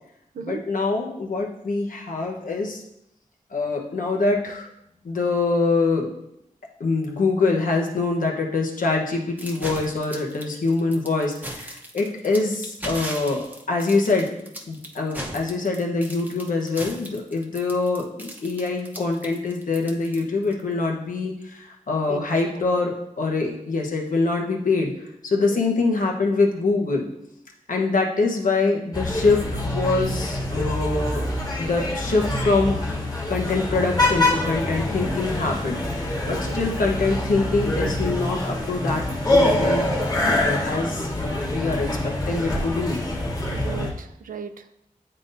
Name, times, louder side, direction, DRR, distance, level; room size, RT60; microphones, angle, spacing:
voice 1, 0.4-2.8 3.5-4.7 5.0-6.1 6.8-14.3 14.7-24.9 25.2-27.1 27.7-31.2 31.6-39.0 39.3-43.0, left 3 dB, 75° left, 0 dB, 1.0 m, -24 dB
sound 1, 9.4-20.6, right 1 dB, 10° right, 0.9 m, -37 dB
sound 2, 28.9-43.9, left 1 dB, 25° left, 1.4 m, -25 dB
voice 2, 43.5-44.9, right 5 dB, 85° right, 10 dB, 0.4 m, -36 dB
9.6 x 3.9 x 2.7 m, 0.80 s
wide cardioid pair, 80°, 14 cm